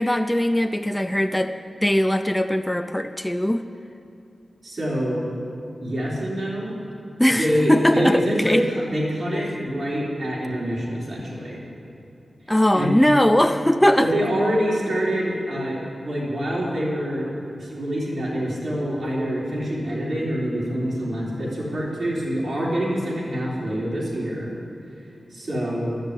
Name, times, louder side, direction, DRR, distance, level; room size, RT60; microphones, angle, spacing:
voice 1, 0.0-1.5 1.8-3.7 7.2-8.6 12.5-14.1, left 1 dB, 10° left, 7 dB, 0.5 m, -20 dB
voice 2, 4.6-5.2 5.8-6.8 7.4-11.6 12.7-12.9 14.0-17.3 17.6-24.5 25.3-25.9, equal, 50° right, -6 dB, 3.8 m, -25 dB
11.5 x 7.2 x 9.8 m, 2.7 s
wide cardioid pair, 90°, 0 cm